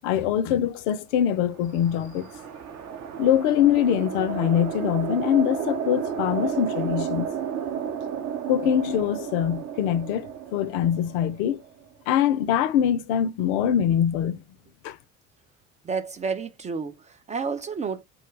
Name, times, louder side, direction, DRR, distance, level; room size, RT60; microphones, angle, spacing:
voice 1, 0.0-2.3 3.2-7.3 8.5-11.6 12.1-14.4 14.8-15.0, left 10 dB, 60° left, 0.5 m, -23 dB
sound 1, 1.4-11.9, right 8 dB, 45° right, 0.7 m, -32 dB
voice 2, 15.8-18.0, right 5 dB, 20° right, 0.3 m, -30 dB
2.3 x 2.1 x 3.0 m
figure-of-eight pair, 55°, 38 cm